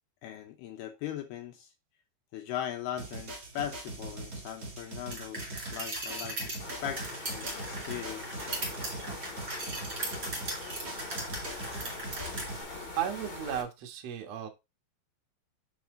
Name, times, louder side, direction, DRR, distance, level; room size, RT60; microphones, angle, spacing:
voice 1, 0.2-1.7 2.3-8.4, left 10 dB, 75° left, 2.5 m, -39 dB
sound 1, 3.0-12.6, right 2 dB, 45° right, 1.1 m, -42 dB
sound 2, 5.1-12.5, right 2 dB, 25° right, 2.3 m, -38 dB
sound 3, 6.6-13.6, left 2 dB, 45° left, 1.4 m, -42 dB
voice 2, 12.9-14.5, right 10 dB, 75° right, 1.5 m, -34 dB
7.6 x 5.8 x 3.8 m
omnidirectional pair, 5.4 m